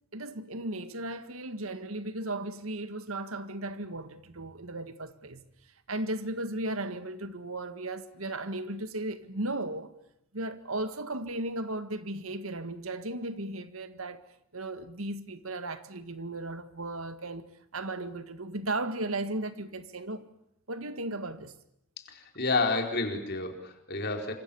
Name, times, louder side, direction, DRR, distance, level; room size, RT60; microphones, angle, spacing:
voice 1, 0.1-5.4 5.9-9.9 10.3-14.2 14.5-17.5 17.7-20.3 20.7-21.5, right 2 dB, 75° right, 1.8 m, -36 dB
voice 2, 22.0-24.3, left 3 dB, 50° left, 4.4 m, -30 dB
28.5 x 26.0 x 7.1 m
head